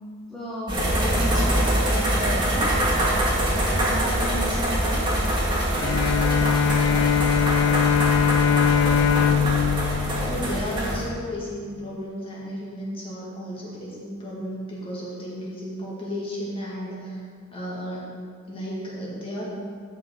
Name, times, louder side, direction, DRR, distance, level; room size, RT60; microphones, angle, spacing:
voice 1, 0.3-2.8 3.1-5.3, left 1 dB, ahead, -9 dB, 1.0 m, -34 dB
sound 1, 0.7-11.0, right 1 dB, 20° right, 1.7 m, -24 dB
Bowed string instrument, 5.8-11.2, left 7 dB, 80° left, 0.4 m, -22 dB
voice 2, 9.9-17.2 17.5-18.1 18.5-19.5, equal, 25° left, -6 dB, 2.0 m, -33 dB
12.5 x 5.2 x 3.9 m, 2.1 s
head